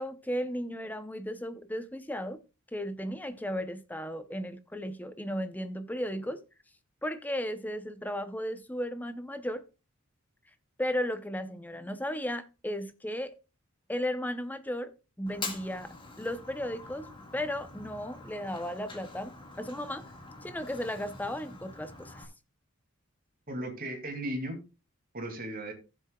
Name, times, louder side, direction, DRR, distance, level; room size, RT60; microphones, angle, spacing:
voice 1, 0.0-2.4 2.7-6.4 7.0-9.6 10.8-13.3 13.9-17.1 17.3-20.1 20.4-22.3, equal, 10° left, 0.6 m, -35 dB
Fire, 15.3-22.2, left 3 dB, 25° left, 1.7 m, -45 dB
voice 2, 23.5-24.6 25.1-25.7, right 1 dB, 45° right, 2.4 m, -36 dB
15.5 x 7.5 x 2.3 m
head